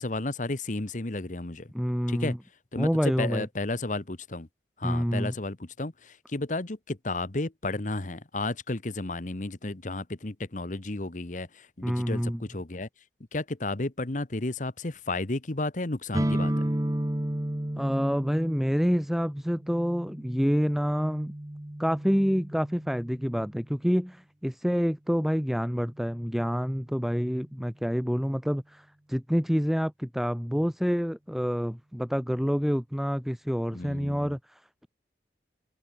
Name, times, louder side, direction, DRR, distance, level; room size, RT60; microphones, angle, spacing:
voice 1, 0.0-1.7 2.1-2.3 2.7-4.5 4.8-12.9 13.3-16.7 33.7-34.4, left 2 dB, 45° left, 1.2 m, -33 dB
voice 2, 1.7-2.4 2.8-3.5 4.8-5.3 11.8-12.4 17.8-21.3 21.8-34.6, equal, ahead, 1.2 m, -27 dB
sound 1, 16.1-23.8, right 1 dB, 20° right, 0.9 m, -33 dB
head